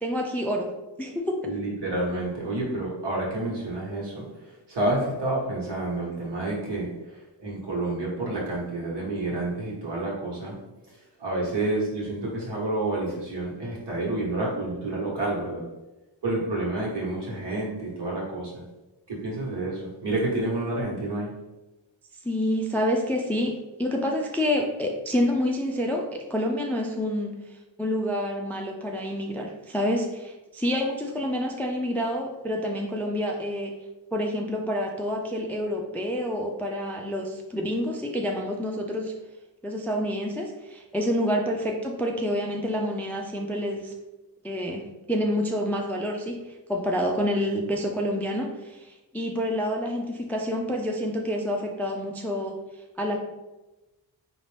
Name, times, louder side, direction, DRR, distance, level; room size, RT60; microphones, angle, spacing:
voice 1, 0.0-1.5 22.2-33.7 34.1-39.1 39.6-43.9 44.4-44.8 45.1-52.6 53.0-53.2, equal, 5° left, 1 dB, 0.3 m, -28 dB
voice 2, 1.4-4.2 4.7-6.9 7.4-10.5 11.2-15.6 16.2-18.6 19.1-21.3, right 2 dB, 65° right, -4 dB, 1.5 m, -29 dB
3.9 x 2.5 x 3.3 m, 1.0 s
cardioid pair, 80°, 44 cm